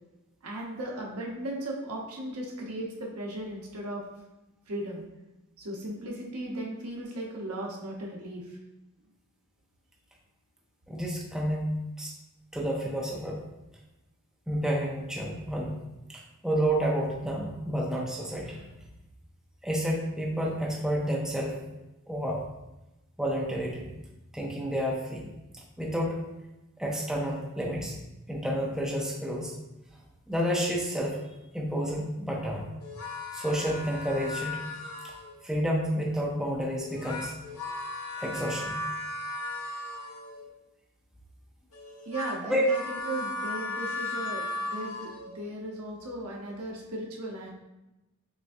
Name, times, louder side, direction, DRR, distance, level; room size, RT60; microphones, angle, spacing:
voice 1, 0.4-4.0 4.7-5.0 5.6-8.6 42.0-47.5, right 1 dB, 90° right, -2 dB, 0.9 m, -37 dB
voice 2, 10.9-12.1 12.5-13.4 14.5-15.8 16.1-18.6 19.6-21.6 22.1-22.4 23.2-23.9 24.3-25.3 25.8-26.2 26.8-27.9 28.3-29.5 30.3-31.2 31.5-32.7 33.3-34.6 35.4-37.3 38.2-38.8 42.4-42.7, equal, 5° right, -3 dB, 0.5 m, -30 dB
sound 1, 32.8-35.4 36.8-40.5 41.7-45.4, left 2 dB, 75° left, 0.7 m, -36 dB
6.3 x 2.5 x 2.6 m, 0.98 s
head